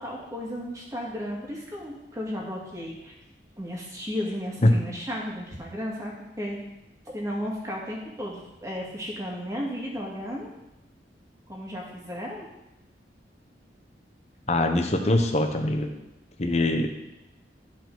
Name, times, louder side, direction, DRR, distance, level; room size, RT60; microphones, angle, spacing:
voice 1, 0.0-3.1 3.6-6.6 7.1-10.5 11.5-12.5, equal, 20° right, -3 dB, 1.9 m, -34 dB
voice 2, 14.5-15.9 16.4-16.9, left 1 dB, 40° left, 5 dB, 0.9 m, -22 dB
12.0 x 5.0 x 3.9 m, 0.94 s
head